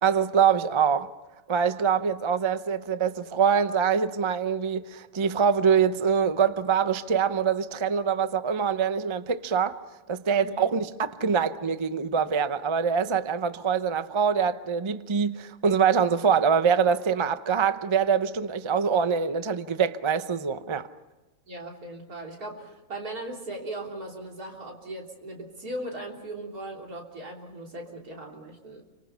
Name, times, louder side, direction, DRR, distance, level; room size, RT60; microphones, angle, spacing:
voice 1, 0.0-1.1 1.5-9.8 10.1-20.9, right 6 dB, 30° right, 0.6 m, -24 dB
voice 2, 21.5-28.8, right 1 dB, 80° right, 3.9 m, -38 dB
29.5 x 25.0 x 5.6 m
omnidirectional pair, 1.6 m